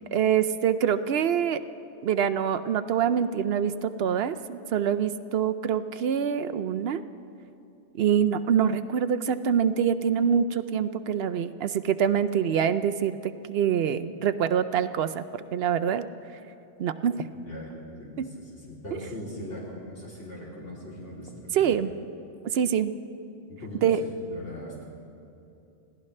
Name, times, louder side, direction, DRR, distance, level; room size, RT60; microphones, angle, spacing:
voice 1, 0.1-1.6 2.0-7.0 7.9-16.1 16.8-17.3 18.2-18.3 18.9-19.0 21.5-21.9 22.5-22.9 23.8-24.0, right 8 dB, 65° right, 11 dB, 0.8 m, -25 dB
voice 2, 17.3-21.3 21.6-21.7 23.5-24.8, left 1 dB, 85° left, -7 dB, 3.5 m, -40 dB
26.0 x 17.0 x 3.2 m, 2.7 s
omnidirectional pair, 1.2 m